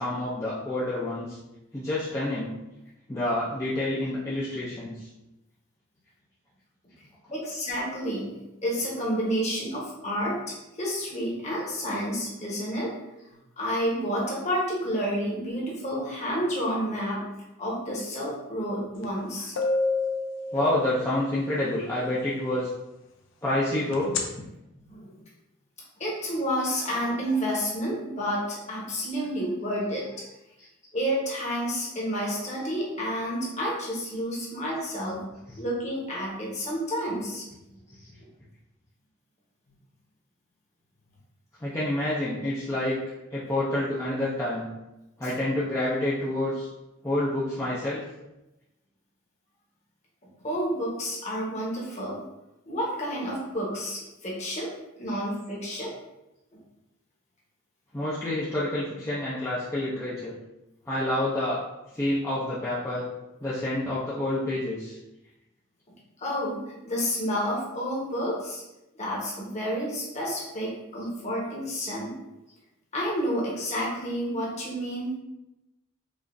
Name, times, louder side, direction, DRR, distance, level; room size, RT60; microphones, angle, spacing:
voice 1, 0.0-1.4 1.7-2.5 3.1-5.1 7.3-7.4 19.4-19.5 20.5-22.7 23.4-24.1 35.0-35.1 35.5-35.6 37.9-38.1 41.6-43.0 43.3-44.7 45.2-46.7 47.0-48.0 55.1-55.2 57.9-60.4 60.9-61.6 61.9-63.1 63.4-65.0, left 1 dB, 15° left, -9 dB, 0.5 m, -28 dB
voice 2, 7.3-8.4 8.6-12.9 13.6-17.2 17.6-19.5 24.8-25.2 26.0-30.2 30.9-35.3 35.6-37.4 50.4-52.2 52.7-54.7 55.0-55.9 66.2-68.6 69.0-72.2 72.9-75.2, equal, 35° left, -4 dB, 1.0 m, -30 dB
sound 1, 19.0-19.1 19.6-21.3 23.9-24.2, left 3 dB, 70° left, 0.5 m, -27 dB
5.0 x 2.5 x 2.5 m, 0.95 s
head